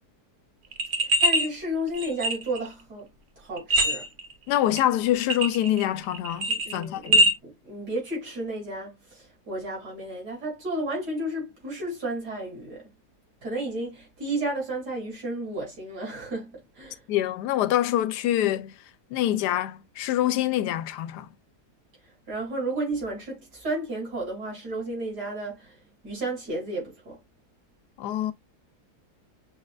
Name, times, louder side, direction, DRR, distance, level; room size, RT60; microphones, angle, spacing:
sound 1, 0.7-1.5 1.9-2.7 3.6-4.3 4.8-4.9 5.3-5.9 6.1-7.3, equal, 50° right, 1.1 m, -22 dB
voice 1, 1.2-3.1 3.4-4.1 6.5-12.9 13.4-17.0 22.3-25.8 26.0-27.2, right 1 dB, 80° right, 3.6 m, -32 dB
voice 2, 4.5-7.2 17.1-18.7 19.1-21.3 28.0-28.3, left 13 dB, 90° left, 1.2 m, -25 dB
6.5 x 3.2 x 2.3 m
omnidirectional pair, 1.7 m